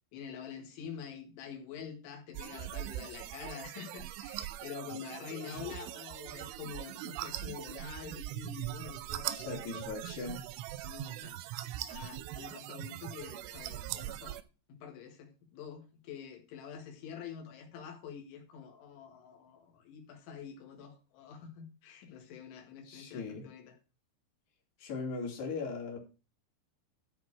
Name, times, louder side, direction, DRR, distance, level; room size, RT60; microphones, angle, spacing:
voice 1, 0.1-9.6 10.8-11.4 11.9-14.4 14.7-23.8, left 7 dB, 80° left, 4.2 m, -46 dB
sound 1, 2.3-14.4, right 14 dB, 85° right, 3.1 m, -41 dB
voice 2, 9.3-10.5 22.8-23.5 24.8-26.0, left 4 dB, 60° left, 4.5 m, -39 dB
13.0 x 4.4 x 6.1 m
omnidirectional pair, 5.4 m